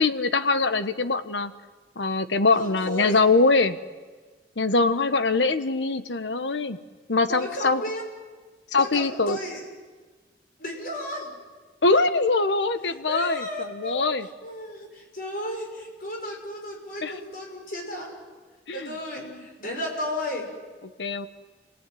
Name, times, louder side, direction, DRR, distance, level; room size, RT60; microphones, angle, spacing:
voice 1, 0.0-1.5 2.0-3.8 4.6-6.8 7.1-7.8 8.7-9.4 11.8-14.3 17.0-17.1 18.7-19.0 19.2-19.4 21.0-21.3, left 3 dB, 90° left, 11 dB, 1.2 m, -23 dB
voice 2, 2.6-3.2 7.3-8.0 8.8-9.6 10.6-11.3 13.1-14.1 14.4-18.2 18.7-20.5, left 1 dB, 50° left, 1 dB, 6.5 m, -34 dB
30.0 x 18.0 x 9.3 m, 1.4 s
head